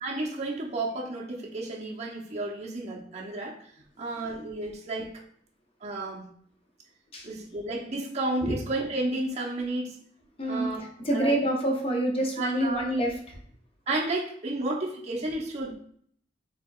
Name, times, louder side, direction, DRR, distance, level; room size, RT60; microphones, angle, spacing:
voice 1, 0.0-3.5 4.0-5.1 5.8-6.3 7.2-10.0 10.4-10.8 11.1-11.4 12.4-12.8 13.9-15.8, right 2 dB, 35° right, -3 dB, 0.7 m, -32 dB
voice 2, 11.0-13.4, right 1 dB, 30° left, 0 dB, 0.8 m, -27 dB
4.6 x 2.9 x 2.4 m, 0.63 s
head